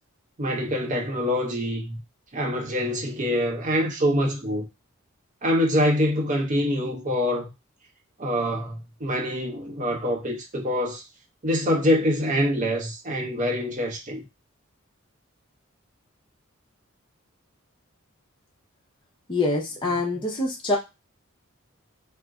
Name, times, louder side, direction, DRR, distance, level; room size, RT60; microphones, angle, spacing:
voice 1, 0.4-2.0 2.3-4.7 5.4-7.5 8.2-11.0 11.4-14.2, equal, 35° right, 0.6 m, -25 dB
voice 2, 19.3-20.8, left 2 dB, 25° left, 0.6 m, -25 dB
2.4 x 2.1 x 3.5 m
head